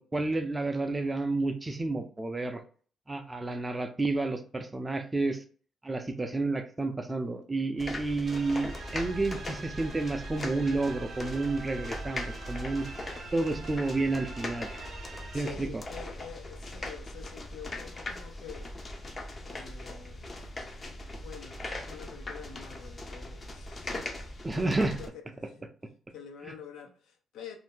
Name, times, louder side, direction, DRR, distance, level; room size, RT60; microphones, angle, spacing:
voice 1, 0.0-2.6 3.1-5.4 5.8-12.9 13.3-14.7 15.3-15.8 24.4-25.0, right 2 dB, 20° right, 0.4 m, -30 dB
Rain in Bangkok - Windows Closed, 7.8-25.1, left 1 dB, 30° left, 0.5 m, -40 dB
sound 1, 8.2-15.5, right 4 dB, 60° right, 0.7 m, -45 dB
voice 2, 15.3-18.7 19.4-20.5 21.1-25.7 26.1-27.6, left 7 dB, 80° left, 0.6 m, -47 dB
2.6 x 2.1 x 3.6 m
cardioid pair, 90°, 0 cm